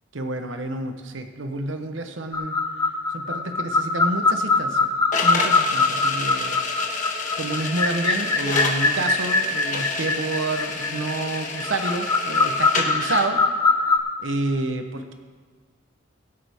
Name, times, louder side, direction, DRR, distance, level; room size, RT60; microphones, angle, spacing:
voice 1, 0.1-2.6 3.1-4.9 5.2-6.6 7.4-13.4 14.2-15.1, right 2 dB, 80° right, 7 dB, 1.0 m, -29 dB
sound 1, 2.3-14.0, left 3 dB, 20° left, 0.8 m, -23 dB
sound 2, 5.1-13.3, left 4 dB, 40° left, 1.5 m, -29 dB
22.0 x 8.5 x 3.6 m, 1.6 s
head